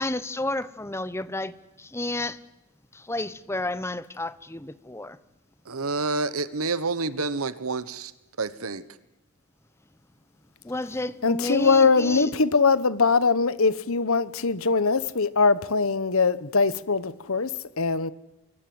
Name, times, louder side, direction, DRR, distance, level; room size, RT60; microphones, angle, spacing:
voice 1, 0.0-2.4 2.9-5.2 10.6-12.3, left 2 dB, 10° left, 0.8 m, -31 dB
voice 2, 5.7-8.1 8.4-8.8, right 3 dB, 75° right, 1.2 m, -28 dB
voice 3, 11.2-18.1, left 4 dB, 70° left, 1.1 m, -22 dB
25.5 x 23.5 x 7.9 m
head